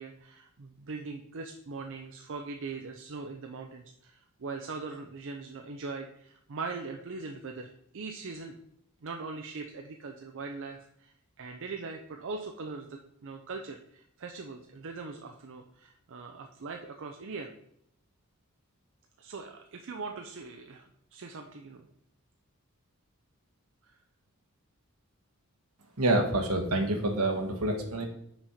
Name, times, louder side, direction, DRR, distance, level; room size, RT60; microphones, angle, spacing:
voice 1, 0.0-8.6 9.0-17.5 19.2-20.9 21.1-21.9 23.8-23.9, right 4 dB, 60° right, 4 dB, 0.5 m, -41 dB
voice 2, 26.0-28.1, right 2 dB, 80° right, 3 dB, 1.3 m, -27 dB
5.9 x 4.2 x 4.9 m, 0.72 s
head